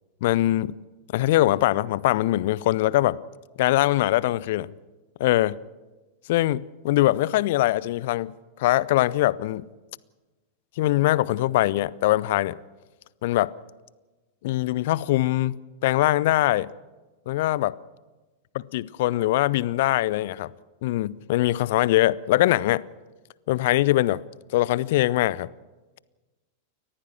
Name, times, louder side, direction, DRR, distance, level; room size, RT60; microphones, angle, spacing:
voice 1, 0.2-0.7 1.1-3.2 3.6-4.7 5.2-5.6 6.3-8.3 8.6-9.6 10.8-12.6 13.2-13.5 14.4-16.7 17.3-17.8 18.5-20.5 20.8-22.8 23.5-24.2 24.5-25.5, left 16 dB, 55° left, 0.5 m, -22 dB
30.0 x 14.5 x 6.5 m
figure-of-eight pair, 90°, 0 cm